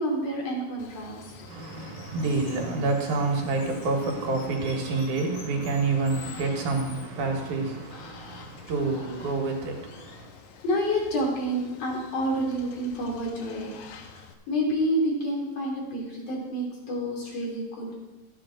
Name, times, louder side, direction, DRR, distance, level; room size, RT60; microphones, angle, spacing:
voice 1, 0.0-1.5 2.4-2.5 10.6-13.7 14.0-18.0, equal, 55° left, -2 dB, 3.6 m, -29 dB
Water, 0.8-14.3, left 6 dB, 80° left, 2.3 m, -48 dB
voice 2, 1.5-10.3, right 3 dB, 90° right, 1 dB, 3.1 m, -28 dB
14.0 x 9.1 x 3.8 m, 1.1 s
omnidirectional pair, 3.4 m